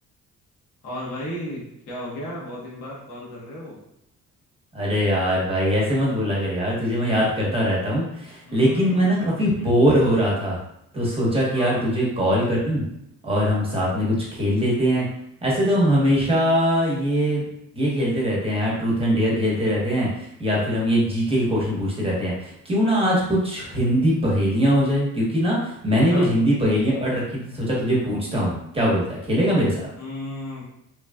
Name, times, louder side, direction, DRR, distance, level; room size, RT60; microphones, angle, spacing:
voice 1, 0.8-3.8 8.4-9.5 11.5-11.9 26.0-26.3 30.0-30.6, left 1 dB, 80° left, -5 dB, 1.2 m, -34 dB
voice 2, 4.7-10.6 10.9-12.8 13.2-15.1 15.4-17.5 17.7-29.8, equal, 20° right, -5 dB, 1.0 m, -22 dB
3.0 x 2.4 x 2.3 m, 0.77 s
cardioid pair, 90°, 30 cm